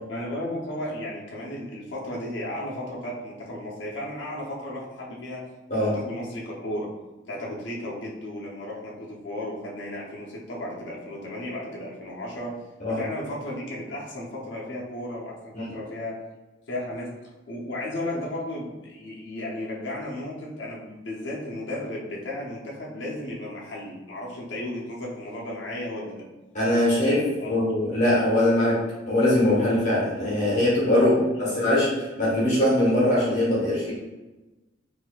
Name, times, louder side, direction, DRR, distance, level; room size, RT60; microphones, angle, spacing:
voice 1, 0.1-5.4 5.7-6.9 7.3-12.5 12.9-16.2 16.7-17.1 17.5-26.3 27.0-27.7 30.9-31.7, left 1 dB, 65° left, -4 dB, 0.6 m, -34 dB
voice 2, 26.5-31.1 31.5-33.9, left 1 dB, 40° left, -8 dB, 1.2 m, -22 dB
4.1 x 2.5 x 2.3 m, 1.1 s
head